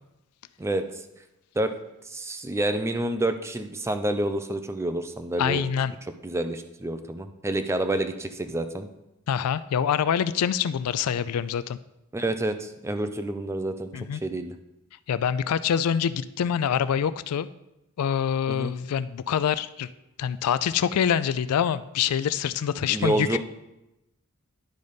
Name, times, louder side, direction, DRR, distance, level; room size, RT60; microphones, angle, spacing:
voice 1, 2.1-5.7 6.2-8.9 12.1-13.9 14.2-14.5 18.5-18.8 22.9-23.4, right 1 dB, 10° right, 8 dB, 0.5 m, -28 dB
voice 2, 5.4-5.9 9.3-11.8 13.9-14.2 15.1-17.5 18.0-19.9 20.2-23.4, left 8 dB, 90° left, 15 dB, 0.3 m, -25 dB
10.5 x 4.0 x 5.1 m, 0.93 s
head